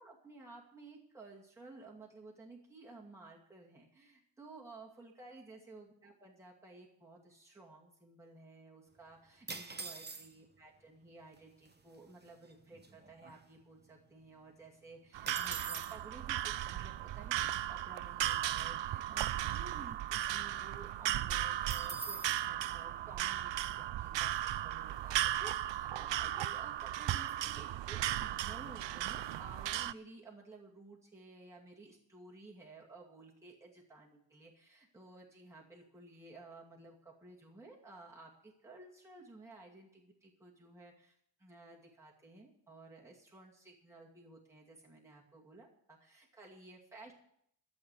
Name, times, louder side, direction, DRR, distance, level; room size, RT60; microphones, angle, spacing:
voice 1, 0.0-47.1, right 3 dB, 5° right, -4 dB, 2.4 m, -55 dB
sound 1, 9.5-10.6 11.4-11.5 11.6-12.0 12.4-13.9 14.2-14.3 14.6-16.0 21.7-22.4, right 4 dB, 20° right, 1.0 m, -45 dB
sound 2, 15.1-29.9, right 12 dB, 70° right, 0.5 m, -36 dB
13.0 x 7.4 x 8.2 m, 0.70 s
wide cardioid pair, 135°, 45 cm